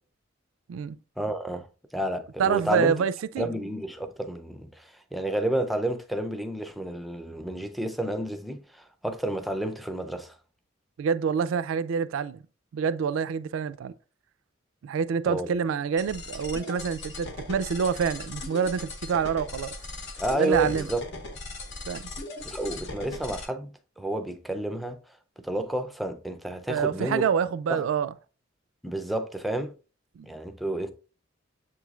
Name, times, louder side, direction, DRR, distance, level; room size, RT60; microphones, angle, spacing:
voice 1, 1.2-1.7 1.9-2.9 3.4-10.3 15.3-15.5 20.2-21.0 22.4-23.7 24.0-25.0 25.4-27.3 27.7-27.8 28.8-29.7 30.2-30.9, right 1 dB, ahead, 0.4 m, -30 dB
voice 2, 2.4-3.5 11.0-12.4 12.7-13.9 14.8-19.8 20.4-20.9 21.9-22.1 26.7-28.1 30.2-30.3, right 6 dB, 80° right, 0.3 m, -27 dB
sound 1, 16.0-23.5, left 2 dB, 60° left, 0.8 m, -38 dB
7.3 x 3.1 x 2.3 m
head